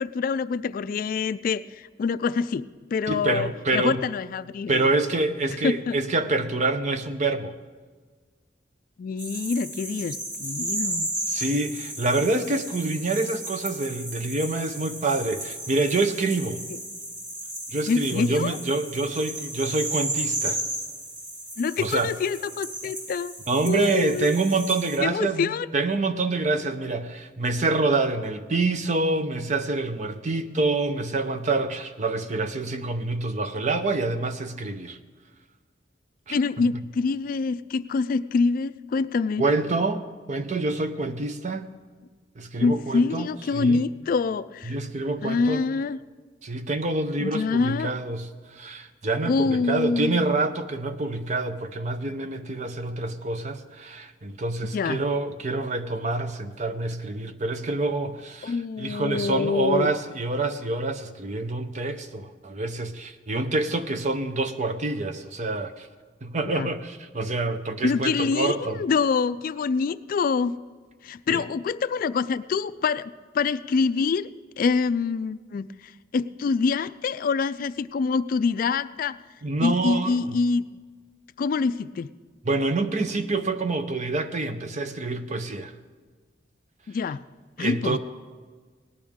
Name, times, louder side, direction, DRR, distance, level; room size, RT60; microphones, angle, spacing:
voice 1, 0.0-4.9 5.6-6.0 9.0-11.1 17.9-18.6 21.6-23.3 23.6-24.3 25.0-25.7 36.3-39.4 42.6-44.7 45.2-46.0 47.2-47.9 49.2-50.2 54.7-55.0 58.4-59.9 66.5-66.7 67.8-70.5 71.0-74.3 74.6-79.2 79.6-80.6 81.4-82.1 86.9-87.2 87.6-88.0, left 4 dB, 50° left, 0.3 m, -26 dB
voice 2, 3.1-4.0 4.7-7.6 11.3-16.6 17.7-20.6 21.8-22.1 23.5-35.0 36.3-36.4 36.7-36.8 39.4-41.7 42.4-43.3 43.5-43.8 44.7-45.6 46.4-65.9 66.2-68.8 71.3-71.4 79.4-80.4 82.4-85.7 87.6-88.0, right 3 dB, 40° right, 0.7 m, -27 dB
sound 1, 9.2-25.0, right 1 dB, 70° right, 5.2 m, -34 dB
18.5 x 12.0 x 3.6 m
head